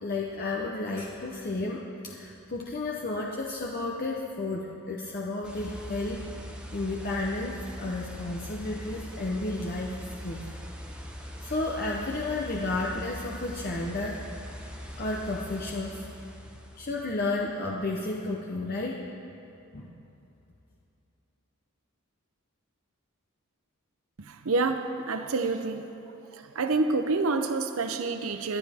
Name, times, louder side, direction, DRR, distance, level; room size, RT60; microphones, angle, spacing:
voice 1, 0.0-6.2 6.7-10.4 11.4-14.2 14.9-16.1 16.8-19.0 19.7-20.0, left 2 dB, 45° left, -2 dB, 0.8 m, -32 dB
sound 1, 5.4-17.1, equal, 5° right, 1.1 m, -41 dB
voice 2, 24.2-25.9 26.3-28.6, right 3 dB, 70° right, 8 dB, 0.7 m, -28 dB
20.0 x 11.5 x 3.6 m, 2.8 s
head